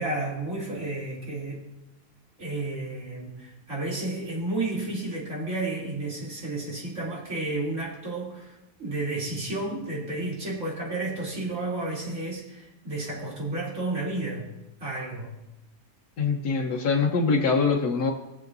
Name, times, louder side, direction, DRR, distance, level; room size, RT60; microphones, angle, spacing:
voice 1, 0.0-1.6 2.4-14.5 14.8-15.3, right 2 dB, 50° right, -6 dB, 3.6 m, -32 dB
voice 2, 16.2-18.1, left 4 dB, 70° left, -1 dB, 1.5 m, -23 dB
19.5 x 7.3 x 2.7 m, 0.93 s
omnidirectional pair, 1.7 m